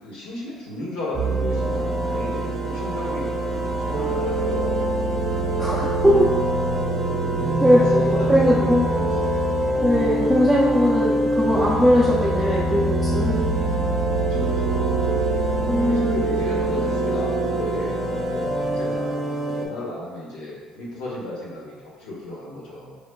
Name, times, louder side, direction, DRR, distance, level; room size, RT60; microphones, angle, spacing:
voice 1, 0.0-4.8 7.3-9.4 14.2-15.0 15.3-15.4 15.8-19.1 19.3-23.0, left 2 dB, 85° left, -5 dB, 1.0 m, -34 dB
sound 1, 1.1-19.7, right 1 dB, 40° right, 0.6 m, -24 dB
voice 2, 5.5-6.3 7.6-7.8 8.3-8.9 9.8-13.4 15.7-16.2, equal, ahead, -8 dB, 0.5 m, -19 dB
4.8 x 2.1 x 2.2 m, 1.4 s
cardioid pair, 110°, 0 cm